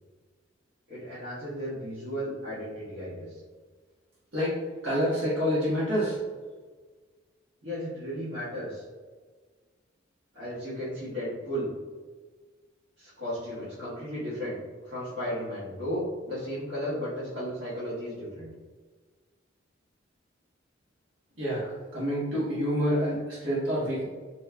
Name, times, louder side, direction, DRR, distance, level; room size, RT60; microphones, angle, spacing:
voice 1, 0.9-3.4 7.6-8.8 10.3-11.7 13.0-14.6 14.8-18.5, equal, 60° right, -12 dB, 1.4 m, -34 dB
voice 2, 4.8-6.2 21.4-24.0, equal, 80° right, -9 dB, 1.4 m, -27 dB
4.2 x 2.9 x 2.2 m, 1.4 s
head